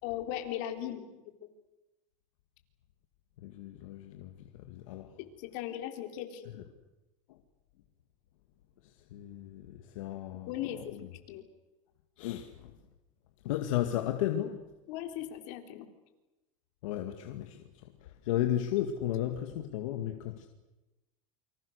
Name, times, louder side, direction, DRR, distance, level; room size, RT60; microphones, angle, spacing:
voice 1, 0.0-1.1 1.4-1.5 5.2-6.6 10.5-11.4 14.9-15.9, left 11 dB, 60° left, 3.9 m, -38 dB
voice 2, 3.4-5.1 7.3-7.4 8.8-10.5 10.8-11.0 12.2-12.7 13.4-14.6 16.8-20.5, left 12 dB, 75° left, 2.2 m, -34 dB
29.0 x 25.5 x 6.7 m
supercardioid pair, 125°, 17 cm